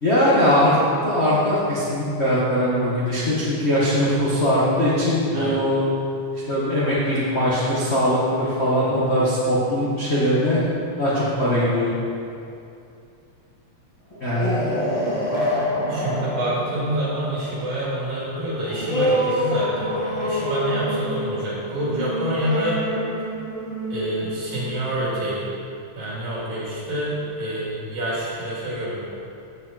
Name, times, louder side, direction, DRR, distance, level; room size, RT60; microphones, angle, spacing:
voice 1, 0.0-0.8 1.0-5.8 6.5-10.6 11.0-11.9 14.2-14.6, equal, 75° left, -8 dB, 0.6 m, -21 dB
sound 1, 14.1-25.3, equal, 25° left, 0.7 m, -27 dB
voice 2, 15.9-22.8 23.9-25.5 25.9-29.0, right 1 dB, 75° right, -7 dB, 3.8 m, -27 dB
13.5 x 5.0 x 4.0 m, 2.6 s
omnidirectional pair, 3.4 m